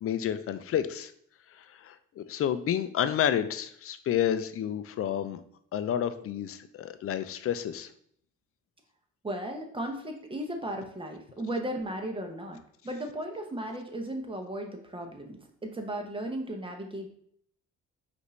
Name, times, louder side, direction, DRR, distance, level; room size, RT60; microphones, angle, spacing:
voice 1, 0.0-1.1 1.5-5.4 5.7-7.9, left 10 dB, 50° left, 11 dB, 0.4 m, -30 dB
voice 2, 9.2-17.1, right 1 dB, 15° right, 3 dB, 0.8 m, -36 dB
5.1 x 2.6 x 3.2 m, 0.64 s
cardioid pair, 90°, 30 cm